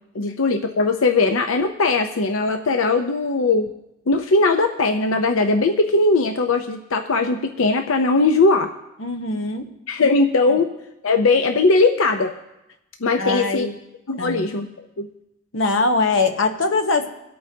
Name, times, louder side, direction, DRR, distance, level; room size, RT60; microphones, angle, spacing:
voice 1, 0.1-3.7 4.1-8.7 9.9-10.7 11.0-12.3 13.0-13.7 14.1-14.7 15.0-15.1, left 3 dB, 90° left, 6 dB, 0.7 m, -19 dB
voice 2, 9.0-9.7 13.2-13.7 14.2-14.5 15.5-17.1, left 3 dB, 70° left, 5 dB, 1.0 m, -22 dB
24.5 x 8.5 x 2.8 m, 0.90 s
head